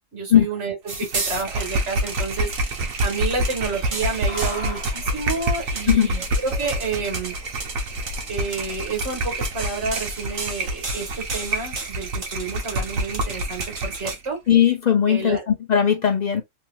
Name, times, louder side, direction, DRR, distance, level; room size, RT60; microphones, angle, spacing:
voice 1, 0.1-7.3 8.3-14.4 15.1-15.4, right 4 dB, 60° right, 2.0 m, -30 dB
sound 1, 0.9-14.2, right 3 dB, 35° right, 0.7 m, -34 dB
sound 2, 0.9-14.3, right 1 dB, 90° right, 1.2 m, -28 dB
sound 3, 3.6-9.7, left 1 dB, 10° right, 1.4 m, -41 dB
voice 2, 14.5-16.4, left 9 dB, 50° left, 0.5 m, -18 dB
3.2 x 3.1 x 2.3 m
omnidirectional pair, 1.4 m